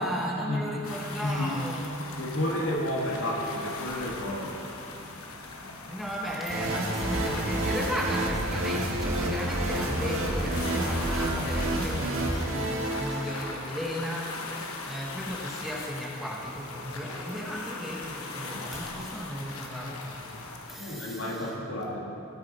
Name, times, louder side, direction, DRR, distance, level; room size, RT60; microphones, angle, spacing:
voice 1, 0.0-2.1 5.9-21.6, equal, ahead, -3 dB, 1.1 m, -35 dB
sound 1, 0.8-20.8, left 3 dB, 85° left, 1.1 m, -40 dB
voice 2, 2.2-4.5 20.7-22.0, left 1 dB, 70° left, -2 dB, 2.1 m, -31 dB
sound 2, 6.5-13.5, right 1 dB, 70° right, 1.6 m, -29 dB
17.0 x 8.6 x 4.2 m, 2.8 s
head